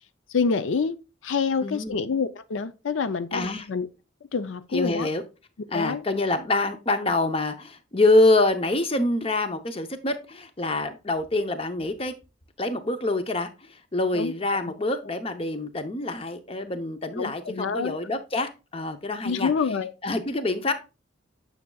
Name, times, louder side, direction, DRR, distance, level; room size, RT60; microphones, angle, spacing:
voice 1, 0.3-1.0 1.2-3.9 4.3-5.1 5.7-6.0 14.1-14.3 17.2-17.9 19.2-19.9, left 5 dB, 80° left, 0.5 m, -27 dB
voice 2, 1.6-2.1 3.3-3.7 4.7-5.2 5.7-12.1 12.6-19.5 20.0-20.7, left 2 dB, 30° left, 0.7 m, -26 dB
9.4 x 6.0 x 2.3 m
head